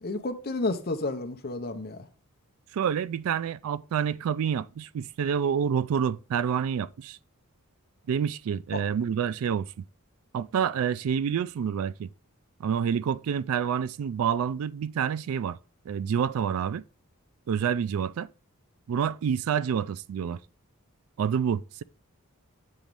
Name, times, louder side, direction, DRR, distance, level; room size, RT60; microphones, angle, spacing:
voice 1, 0.0-2.1 8.7-8.8, left 2 dB, 45° left, 0.7 m, -31 dB
voice 2, 2.7-7.2 8.1-9.8 10.3-12.1 12.6-15.6 15.9-16.8 17.5-18.3 18.9-20.4 21.2-21.8, right 7 dB, 70° right, 0.3 m, -28 dB
7.3 x 3.1 x 5.2 m
head